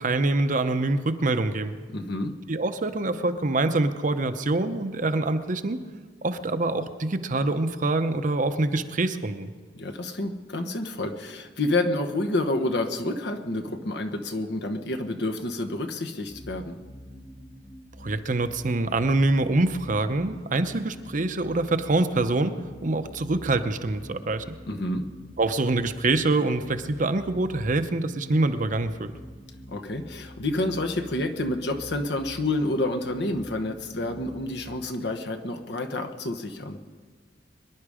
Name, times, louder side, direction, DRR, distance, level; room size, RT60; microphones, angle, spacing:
voice 1, 0.0-1.8 2.5-5.8 6.2-9.5 18.0-24.5 25.4-29.1, right 2 dB, 45° right, 9 dB, 0.8 m, -25 dB
voice 2, 1.9-2.3 9.8-16.8 24.7-25.1 29.7-36.8, left 2 dB, 65° left, 5 dB, 1.2 m, -29 dB
sound 1, 16.3-34.8, equal, 5° left, 1.0 m, -46 dB
24.0 x 11.0 x 5.0 m, 1.5 s
head